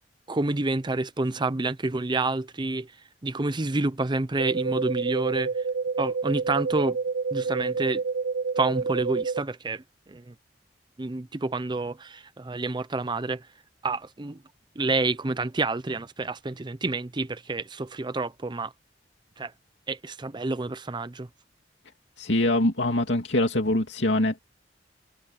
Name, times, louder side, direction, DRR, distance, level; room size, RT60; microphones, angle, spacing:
voice 1, 0.3-2.9 3.2-5.5 6.0-7.0 7.3-8.0 8.6-10.3 11.0-13.4 13.8-14.4 14.8-18.7 19.4-19.5 19.9-21.3, right 2 dB, 25° right, 0.6 m, -28 dB
sound 1, 4.4-9.4, right 5 dB, 90° right, 0.7 m, -28 dB
voice 2, 22.2-24.4, left 1 dB, 90° left, 2.5 m, -24 dB
head